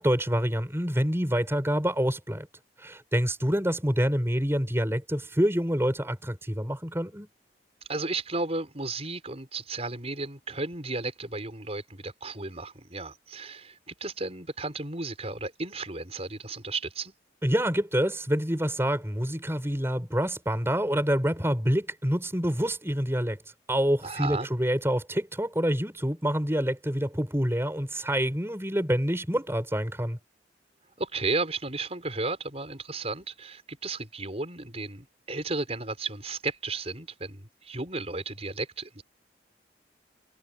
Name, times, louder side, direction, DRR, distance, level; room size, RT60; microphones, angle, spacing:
voice 1, 0.0-2.5 2.8-7.3 17.4-23.4 23.7-30.2, equal, 15° right, 7.0 m, -27 dB
voice 2, 7.9-17.1 24.0-24.5 31.0-39.0, right 3 dB, 35° right, 5.6 m, -34 dB
head